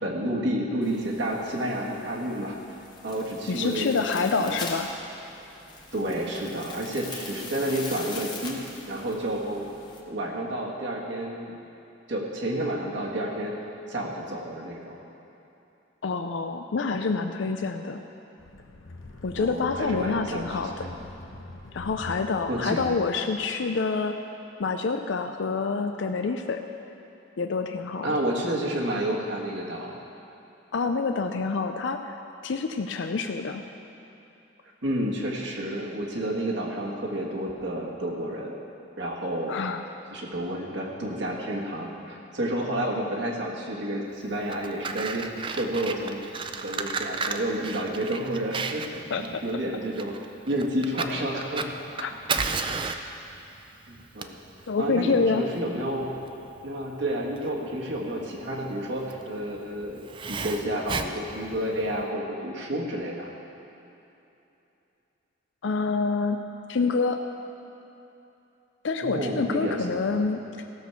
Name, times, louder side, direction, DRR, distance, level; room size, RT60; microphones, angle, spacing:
voice 1, 0.0-2.6 3.0-4.6 5.9-9.7 10.1-11.5 12.1-13.5 13.9-15.0 19.4-21.0 22.5-22.8 28.0-29.9 34.8-38.5 39.0-39.6 40.1-46.2 46.6-48.9 49.1-50.2 50.5-51.7 53.9-54.4 54.8-56.1 56.6-63.3 69.0-70.2, right 1 dB, 65° right, -2 dB, 1.5 m, -30 dB
sound 1, 0.8-10.0, left 3 dB, 20° left, 1.2 m, -42 dB
voice 2, 3.5-4.9 16.0-18.0 19.2-20.7 21.7-24.2 24.6-26.6 27.4-28.1 30.7-32.2 32.4-33.6 39.5-39.8 49.1-49.4 52.0-52.1 54.7-55.4 65.6-66.4 66.7-67.2 68.8-70.4, left 4 dB, 70° left, 6 dB, 0.5 m, -27 dB
sound 2, 18.4-23.1, left 1 dB, 85° left, 0.9 m, -43 dB
Fire, 44.3-62.0, right 4 dB, 25° right, 0.4 m, -34 dB
16.0 x 6.1 x 7.0 m, 2.9 s
head